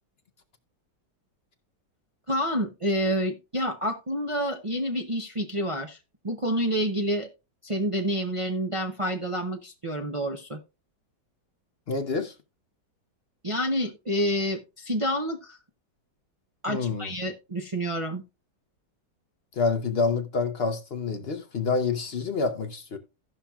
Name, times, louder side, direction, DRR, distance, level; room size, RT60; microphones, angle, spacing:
voice 1, 2.3-6.0 6.2-7.3 7.6-10.6 13.4-15.6 16.6-18.2, equal, 55° right, 0.3 m, -28 dB
voice 2, 11.9-12.3 16.7-17.1 19.6-23.0, left 4 dB, 55° left, 0.7 m, -27 dB
16.5 x 5.7 x 2.3 m
omnidirectional pair, 1.9 m